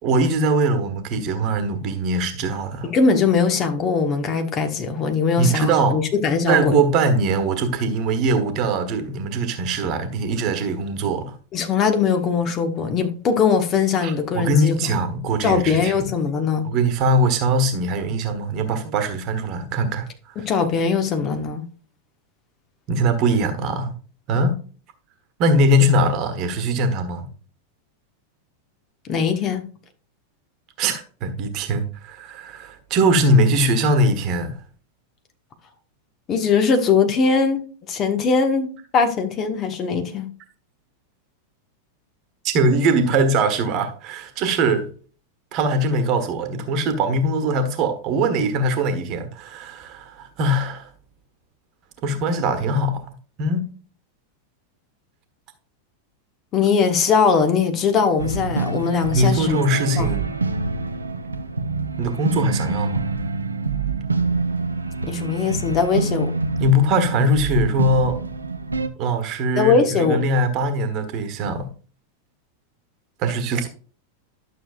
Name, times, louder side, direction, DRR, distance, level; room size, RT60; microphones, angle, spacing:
voice 1, 0.0-2.9 5.4-6.0 6.5-11.3 14.0-16.1 16.6-20.5 22.9-23.9 24.3-24.6 25.4-27.3 30.8-34.6 42.4-44.9 45.5-50.9 52.0-53.0 53.4-53.7 59.1-60.3 62.0-63.0 66.6-68.2 69.0-71.7 73.2-73.7, right 1 dB, 40° right, 1.4 m, -21 dB
voice 2, 2.8-6.7 11.5-14.9 15.4-16.7 20.4-21.7 29.1-29.7 36.3-40.3 56.5-59.6 60.0-60.1 65.1-66.3 69.5-70.2, left 5 dB, 30° left, 1.3 m, -20 dB
sound 1, 58.2-68.9, right 3 dB, 80° right, 0.7 m, -26 dB
11.5 x 6.6 x 2.4 m
figure-of-eight pair, 90°, 0 cm